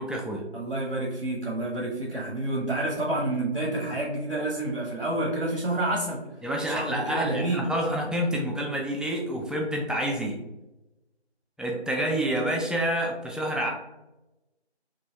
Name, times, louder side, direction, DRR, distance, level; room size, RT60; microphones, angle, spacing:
voice 1, 0.0-0.4 6.4-10.4 11.6-13.7, right 1 dB, ahead, -1 dB, 0.3 m, -28 dB
voice 2, 0.5-6.2 6.6-7.6, right 2 dB, 75° right, -2 dB, 0.8 m, -29 dB
3.0 x 2.4 x 2.7 m, 1.0 s
figure-of-eight pair, 175°, 33 cm